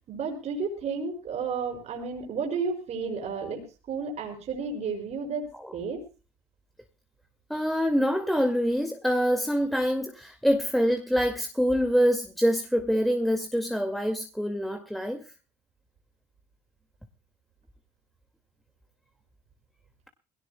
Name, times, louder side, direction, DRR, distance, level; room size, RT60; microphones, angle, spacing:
voice 1, 0.1-6.1, right 5 dB, 50° right, 5.5 m, -32 dB
voice 2, 7.5-15.2, equal, ahead, 2.0 m, -25 dB
21.5 x 17.5 x 2.2 m
hypercardioid pair, 70°, 14 cm